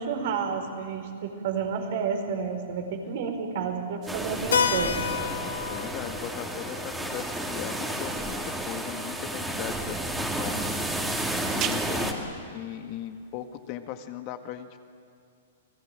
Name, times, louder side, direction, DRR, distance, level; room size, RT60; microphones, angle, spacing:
voice 1, 0.0-5.0, right 6 dB, 60° right, 5 dB, 4.7 m, -30 dB
sound 1, 4.0-13.6, right 10 dB, 30° right, 1.7 m, -41 dB
sound 2, 4.1-12.1, right 1 dB, 5° right, 3.0 m, -32 dB
Keyboard (musical), 4.5-9.0, left 7 dB, 80° left, 1.1 m, -32 dB
voice 2, 5.6-10.6 11.6-14.8, left 11 dB, 40° left, 8 dB, 1.9 m, -38 dB
29.5 x 19.0 x 9.0 m, 2.4 s
hypercardioid pair, 130°, 0 cm